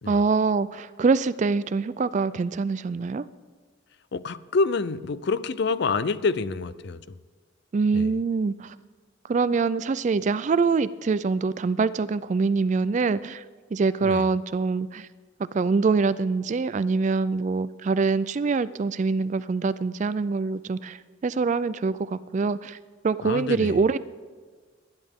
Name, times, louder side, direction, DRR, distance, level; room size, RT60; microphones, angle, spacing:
voice 1, 0.1-3.2 7.7-8.8 9.3-13.4 13.7-15.1 15.4-22.8 23.0-24.0, right 4 dB, 40° right, 0.3 m, -24 dB
voice 2, 4.1-7.0 7.9-8.1 14.0-14.2 23.2-23.8, left 4 dB, 55° left, 0.5 m, -27 dB
29.0 x 10.5 x 3.6 m
head